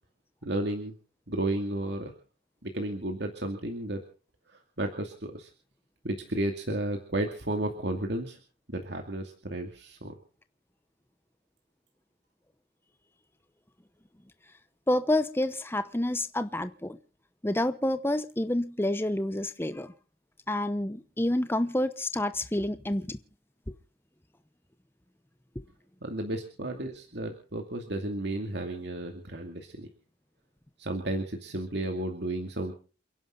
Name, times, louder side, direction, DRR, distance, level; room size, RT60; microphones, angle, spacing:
voice 1, 0.4-0.9 1.3-2.1 2.6-4.0 4.5-5.5 6.0-8.4 8.7-10.2 26.0-29.9 30.8-32.7, right 1 dB, 60° right, 2.4 m, -33 dB
voice 2, 14.9-17.0 17.4-19.9 20.5-23.2 23.7-23.8 25.6-25.7, left 1 dB, 10° left, 0.8 m, -28 dB
29.0 x 11.0 x 3.9 m
head